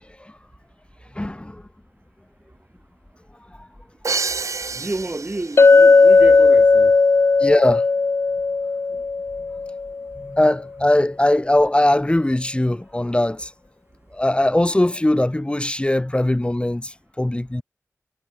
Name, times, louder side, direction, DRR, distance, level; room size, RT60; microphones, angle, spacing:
voice 1, 1.1-1.6 3.5-3.7 7.4-7.9 10.2-13.5 14.1-17.6, left 1 dB, 20° left, 2.3 m, -20 dB
Crash cymbal, 4.0-5.9, right 4 dB, 75° right, 1.6 m, -28 dB
voice 2, 4.7-6.9, right 2 dB, 35° right, 5.1 m, -30 dB
Chink clink, 5.6-10.0, left 4 dB, 50° left, 0.5 m, -15 dB
cardioid pair, 50°, 5 cm